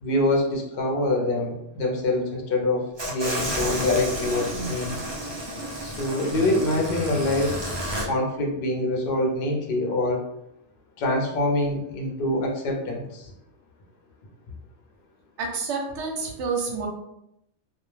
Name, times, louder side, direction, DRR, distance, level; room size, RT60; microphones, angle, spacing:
voice 1, 0.0-5.0 5.8-7.7 8.1-10.2 11.0-13.3, left 2 dB, 60° left, 1 dB, 0.7 m, -25 dB
sound 1, 3.0-8.0, equal, 40° right, 0.4 m, -31 dB
voice 2, 15.4-16.9, right 4 dB, 75° right, 1 dB, 0.9 m, -29 dB
2.3 x 2.1 x 3.1 m, 0.83 s
omnidirectional pair, 1.2 m